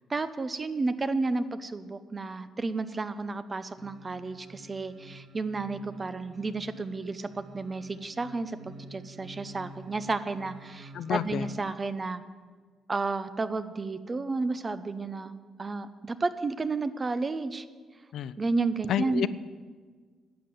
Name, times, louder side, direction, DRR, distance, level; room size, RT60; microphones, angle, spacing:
voice 1, 0.1-12.2 12.9-17.6 18.4-19.3, right 3 dB, 30° right, 12 dB, 0.7 m, -32 dB
sound 1, 3.8-11.6 12.0-12.1, right 1 dB, 70° right, 1.3 m, -49 dB
voice 2, 10.9-11.5 18.1-18.3 18.9-19.3, left 10 dB, 75° left, 15 dB, 0.4 m, -29 dB
11.5 x 7.6 x 7.9 m, 1.5 s
cardioid pair, 90°, 0 cm